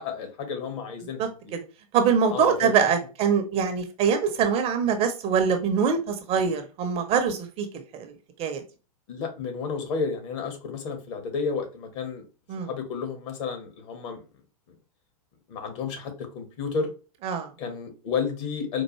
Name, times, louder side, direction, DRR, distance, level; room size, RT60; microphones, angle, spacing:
voice 1, 0.0-1.2 2.3-2.7 9.1-12.2 12.7-14.2 15.5-16.9 17.6-18.8, left 5 dB, 50° left, 1.5 m, -31 dB
voice 2, 1.2-1.6 1.9-7.7 7.9-8.1 8.4-8.6 12.5-12.7 17.2-17.5, right 6 dB, 30° right, 0.7 m, -24 dB
4.5 x 2.5 x 3.0 m
hypercardioid pair, 105°, 19 cm